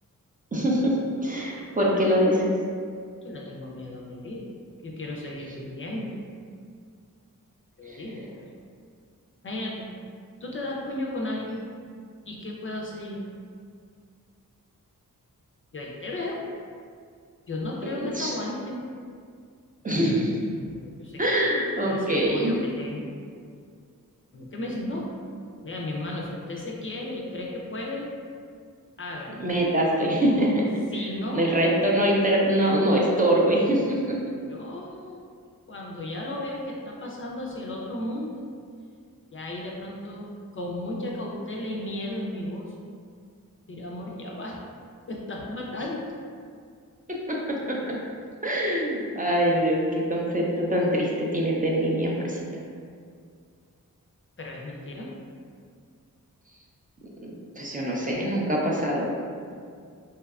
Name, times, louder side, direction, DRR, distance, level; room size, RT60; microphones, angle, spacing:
voice 1, 0.5-0.9 1.2-2.6 7.8-8.0 17.8-18.3 19.8-20.4 21.2-22.6 29.4-30.7 31.3-34.2 47.3-48.0 48.4-52.6 57.2-59.1, equal, 25° right, -3 dB, 0.4 m, -24 dB
voice 2, 3.2-6.2 7.8-8.2 9.4-9.9 10.4-11.7 12.3-13.3 15.7-16.4 17.5-18.8 20.5-21.3 21.8-23.2 24.3-25.1 25.5-28.1 29.0-29.4 30.9-31.6 34.5-35.3 35.7-38.5 39.3-42.8 43.7-44.6 45.1-46.0 54.4-55.1, left 1 dB, 35° left, -2 dB, 0.4 m, -34 dB
2.7 x 2.2 x 2.3 m, 2.2 s
cardioid pair, 45°, 35 cm